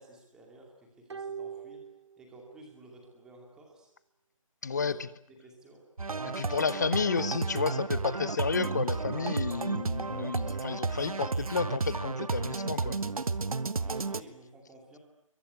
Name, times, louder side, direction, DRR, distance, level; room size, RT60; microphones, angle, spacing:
voice 1, 0.0-1.8 2.2-3.9 4.7-4.9 5.3-5.8 13.7-15.0, right 1 dB, 5° right, 2.6 m, -53 dB
sound 1, 1.1-2.7 3.0-3.1, right 6 dB, 55° right, 1.2 m, -42 dB
voice 2, 4.6-5.1 6.2-13.0, left 5 dB, 30° left, 1.1 m, -31 dB
sound 2, 6.0-14.2, right 4 dB, 85° right, 1.5 m, -32 dB
26.0 x 23.0 x 9.6 m
hypercardioid pair, 175°, 18 cm